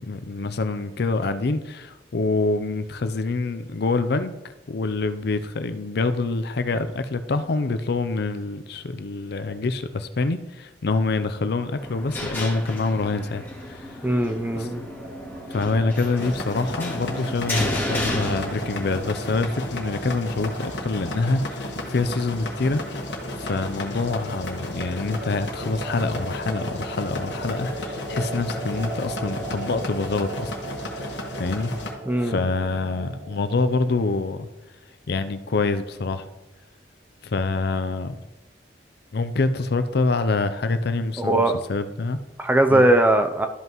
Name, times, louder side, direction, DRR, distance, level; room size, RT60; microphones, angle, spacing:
voice 1, 0.0-4.3 4.7-13.9 14.6-14.7 15.5-22.8 23.4-30.5 30.9-31.1 31.4-31.7 32.2-34.5 35.1-36.3 37.2-38.1 39.1-41.4 41.7-42.2 42.7-42.9, left 3 dB, 65° left, 0.5 m, -26 dB
sound 1, 11.8-19.1, left 1 dB, 15° left, 2.5 m, -32 dB
voice 2, 14.0-14.8 32.1-32.4 41.2-41.6 42.4-43.5, right 1 dB, 10° right, 0.5 m, -20 dB
sound 2, 14.5-33.9, right 2 dB, 60° right, 2.2 m, -38 dB
sound 3, 16.2-31.9, left 1 dB, 80° left, 1.5 m, -34 dB
13.0 x 5.5 x 3.0 m
head